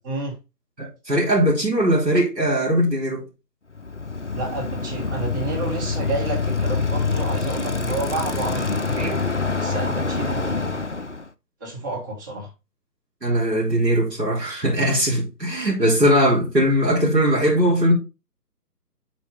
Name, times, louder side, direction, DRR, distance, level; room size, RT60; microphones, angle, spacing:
voice 1, 0.0-0.3 4.3-9.2 9.6-10.8 11.6-12.5, right 2 dB, 10° right, 1.4 m, -30 dB
voice 2, 0.8-3.3 9.0-9.1 13.2-17.9, equal, 85° right, 3.6 m, -20 dB
Bicycle, 3.7-11.3, left 4 dB, 50° left, 0.4 m, -26 dB
7.4 x 4.4 x 3.8 m
figure-of-eight pair, 150°, 49 cm